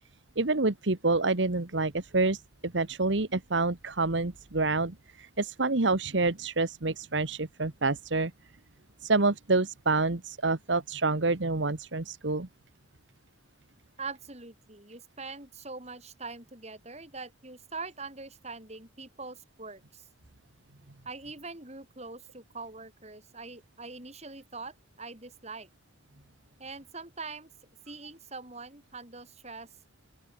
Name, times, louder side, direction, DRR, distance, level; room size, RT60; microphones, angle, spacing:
voice 1, 0.4-8.3 9.0-12.5, right 3 dB, 75° right, 1.5 m, -27 dB
voice 2, 14.0-20.1 21.1-25.7 26.6-27.5 27.9-29.7, right 4 dB, 35° right, 7.4 m, -43 dB
open air
head